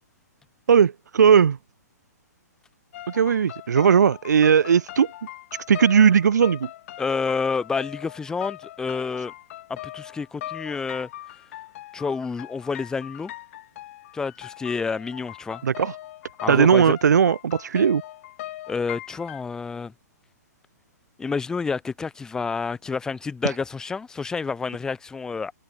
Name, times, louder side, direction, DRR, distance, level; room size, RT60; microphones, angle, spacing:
voice 1, 0.7-1.6 3.1-5.1 5.7-6.7 15.6-15.9 16.5-18.0, right 7 dB, 80° right, 0.9 m, -18 dB
sound 1, 2.9-19.4, left 14 dB, 45° left, 2.3 m, -40 dB
voice 2, 7.0-9.3 9.7-11.1 11.9-13.3 14.1-15.6 16.4-16.9 18.7-19.9 21.2-25.5, left 5 dB, 5° left, 0.5 m, -29 dB
hypercardioid pair, 140°, 9 cm